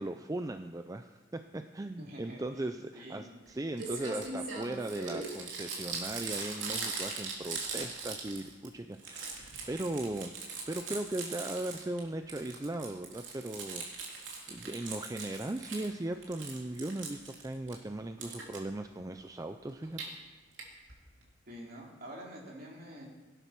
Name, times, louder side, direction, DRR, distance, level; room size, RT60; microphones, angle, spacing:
voice 1, 0.0-10.3 10.7-20.0, right 1 dB, 20° right, 8 dB, 0.4 m, -38 dB
voice 2, 2.0-2.4 2.9-3.2 21.5-23.1, equal, 50° right, -2 dB, 3.6 m, -46 dB
Crumpling crinkling, 3.5-3.6 3.8-8.7 8.9-12.0 12.3-15.9 16.2-17.8 18.2-18.6 19.7-20.1 20.6-20.7 20.9-21.0 21.2-21.3, right 4 dB, 75° right, 3.2 m, -40 dB
17.0 x 10.0 x 6.0 m, 1.3 s
head